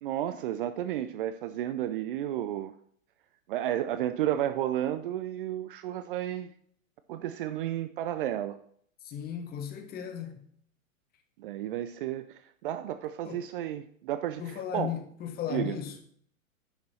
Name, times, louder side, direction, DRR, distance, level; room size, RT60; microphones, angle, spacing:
voice 1, 0.0-2.7 3.5-6.5 7.1-8.6 11.4-14.9 15.5-15.8, right 12 dB, 40° right, 0.5 m, -32 dB
voice 2, 9.0-10.4 13.2-13.5 14.4-16.0, left 9 dB, 20° left, 1.2 m, -36 dB
10.0 x 6.0 x 4.3 m
hypercardioid pair, 115°, 42 cm